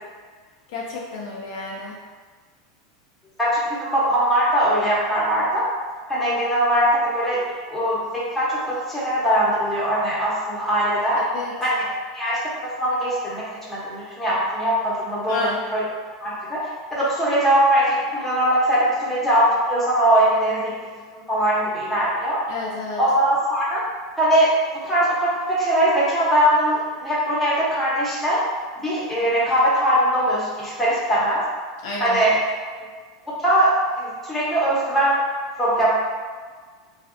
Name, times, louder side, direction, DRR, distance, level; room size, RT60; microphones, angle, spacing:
voice 1, 0.7-2.0 11.2-11.5 15.3-15.5 22.5-23.0 31.8-32.2, left 3 dB, 65° left, -3 dB, 0.4 m, -31 dB
voice 2, 3.4-5.6 6.1-7.4 7.7-11.2 11.6-11.9 12.1-15.8 16.2-16.6 16.9-20.7 21.3-22.4 23.0-23.8 24.2-24.5 24.8-28.4 28.8-31.4 32.0-32.4 33.2-35.2 35.6-36.0, right 1 dB, 10° left, -8 dB, 0.9 m, -21 dB
2.5 x 2.0 x 2.5 m, 1.5 s
hypercardioid pair, 105°, 2 cm